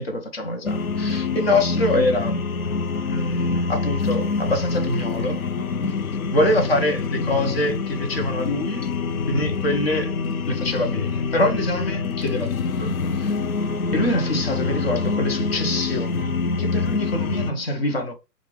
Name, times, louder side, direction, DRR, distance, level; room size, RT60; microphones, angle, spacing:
voice 1, 0.0-2.3 3.0-5.4 6.3-8.9 9.3-10.1 10.5-13.4 13.9-18.1, left 1 dB, 35° left, 0.9 m, -25 dB
sound 1, 0.6-17.5, left 4 dB, 60° left, 0.5 m, -26 dB
4.6 x 2.4 x 3.2 m
figure-of-eight pair, 145°, 49 cm